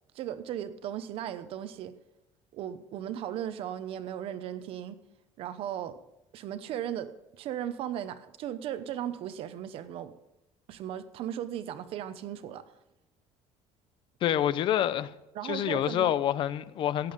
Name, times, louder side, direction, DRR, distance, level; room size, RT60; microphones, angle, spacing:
voice 1, 0.1-1.9 2.5-5.0 5.4-6.0 6.3-10.2 10.7-12.6 15.3-16.1, right 10 dB, 50° right, 0.9 m, -36 dB
voice 2, 14.2-15.1 15.4-17.1, left 11 dB, 45° left, 0.6 m, -27 dB
17.5 x 8.4 x 5.2 m
cardioid pair, 175°, 12 cm